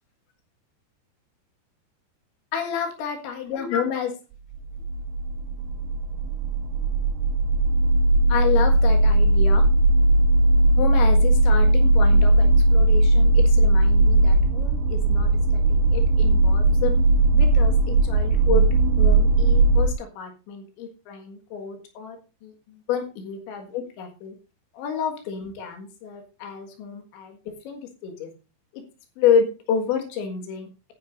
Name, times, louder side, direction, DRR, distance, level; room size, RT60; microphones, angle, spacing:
voice 1, 2.5-4.1 8.3-9.6 10.8-16.9 17.3-24.3 24.7-27.4 27.7-28.3 28.7-28.8 29.2-30.9, left 7 dB, 80° left, 4 dB, 4.0 m, -29 dB
sound 1, 4.6-19.9, right 2 dB, 80° right, 2.8 m, -18 dB
17.0 x 9.6 x 2.6 m, 0.31 s
omnidirectional pair, 5.3 m